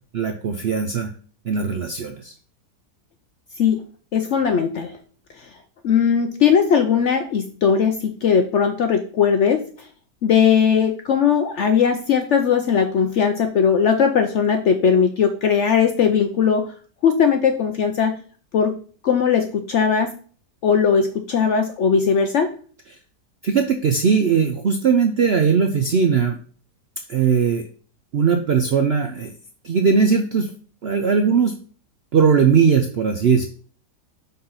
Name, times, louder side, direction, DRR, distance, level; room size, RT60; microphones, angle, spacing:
voice 1, 0.1-1.1 1.5-2.3 23.4-26.4 27.1-27.6 28.1-29.3 29.6-30.5 30.8-31.5 32.1-33.5, right 6 dB, 65° right, 6 dB, 0.6 m, -19 dB
voice 2, 4.1-4.9 5.8-9.6 10.2-16.7 17.0-18.2 18.5-18.8 19.0-20.1 20.6-22.5, left 7 dB, 65° left, 6 dB, 0.7 m, -19 dB
5.4 x 3.9 x 5.6 m, 0.43 s
omnidirectional pair, 1.8 m